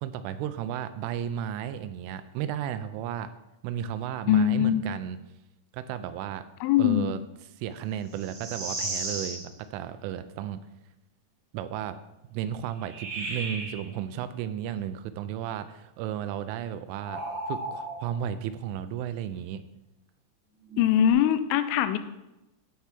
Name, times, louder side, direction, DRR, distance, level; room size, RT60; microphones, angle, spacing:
voice 1, 0.0-3.3 3.6-5.2 5.7-6.4 6.8-7.2 7.6-9.4 9.7-10.6 11.5-12.0 12.3-17.2 17.5-19.6, right 10 dB, 85° right, 11 dB, 3.0 m, -34 dB
voice 2, 4.3-4.8 6.6-7.1 20.8-22.0, left 11 dB, 85° left, 10 dB, 3.2 m, -22 dB
sound 1, 8.1-9.5 12.8-13.8 17.0-18.2 20.7-21.1, right 2 dB, 60° right, 1.9 m, -35 dB
12.0 x 4.6 x 5.9 m, 0.94 s
omnidirectional pair, 5.9 m